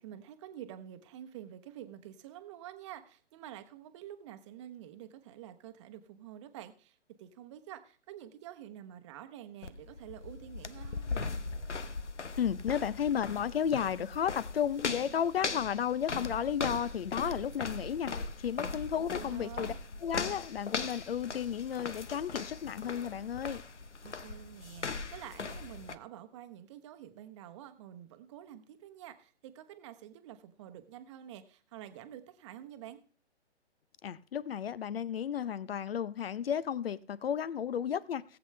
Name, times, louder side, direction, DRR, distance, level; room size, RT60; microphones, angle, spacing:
voice 1, 0.0-11.3 19.0-19.8 24.0-33.0, right 11 dB, 25° right, 1.0 m, -48 dB
sound 1, 9.6-26.0, left 4 dB, 85° left, 1.0 m, -39 dB
voice 2, 12.4-19.7 20.0-23.6 34.0-38.2, left 8 dB, 55° left, 0.7 m, -33 dB
18.5 x 8.1 x 3.2 m
figure-of-eight pair, 140°, 34 cm